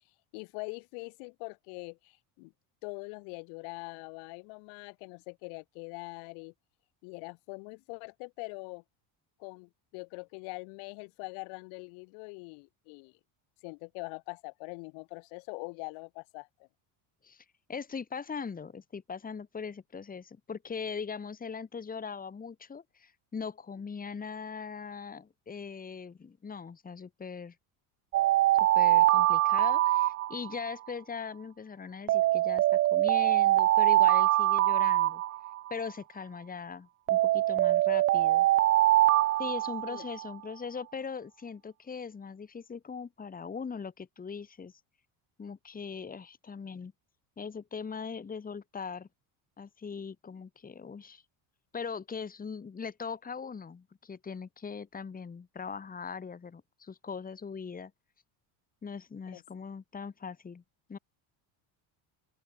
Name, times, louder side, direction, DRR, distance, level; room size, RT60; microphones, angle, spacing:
voice 1, 0.3-2.5 2.8-6.5 7.0-8.8 9.4-13.1 13.6-16.7 39.9-40.0 59.3-59.4, left 38 dB, 90° left, 2.1 m, -43 dB
voice 2, 17.2-27.6 28.8-35.2 35.7-38.5 39.4-44.7 45.4-46.9 47.4-49.1 49.6-51.2 51.7-57.9 58.8-60.6 60.9-61.0, left 5 dB, 15° left, 3.5 m, -40 dB
Alarm, 28.1-30.7 32.1-35.7 37.1-40.3, right 15 dB, 30° right, 0.4 m, -24 dB
open air
cardioid pair, 160°, 48 cm